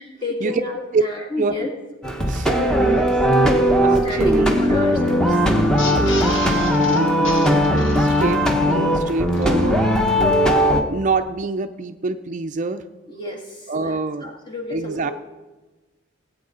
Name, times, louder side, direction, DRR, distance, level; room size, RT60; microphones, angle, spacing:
voice 1, 0.2-1.7 4.0-5.4 13.1-15.1, left 2 dB, 25° left, 0 dB, 2.1 m, -31 dB
sound 1, 2.0-10.8, equal, 5° left, 0.9 m, -18 dB
voice 2, 2.3-3.2 3.5-4.6 6.4-9.8 10.4-12.8 13.7-14.4 14.7-15.1, right 3 dB, 40° right, 9 dB, 0.4 m, -26 dB
sound 2, 5.8-8.6 9.0-9.1 9.3-9.4, left 3 dB, 80° left, 1.6 m, -31 dB
18.0 x 8.5 x 3.9 m, 1.2 s
head